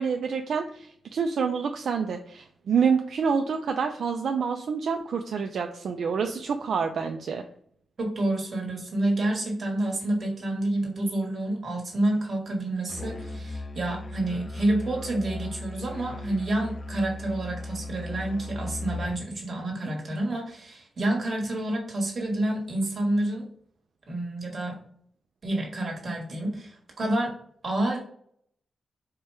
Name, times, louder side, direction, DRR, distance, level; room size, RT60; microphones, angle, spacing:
voice 1, 0.0-7.4, right 6 dB, 65° right, 5 dB, 0.3 m, -27 dB
voice 2, 8.0-23.5 24.1-24.8 25.4-27.3 27.6-28.0, right 1 dB, 40° right, -1 dB, 1.4 m, -28 dB
Musical instrument, 12.9-19.3, left 2 dB, 30° left, 0.4 m, -37 dB
4.4 x 2.2 x 4.7 m, 0.63 s
wide cardioid pair, 155°, 0 cm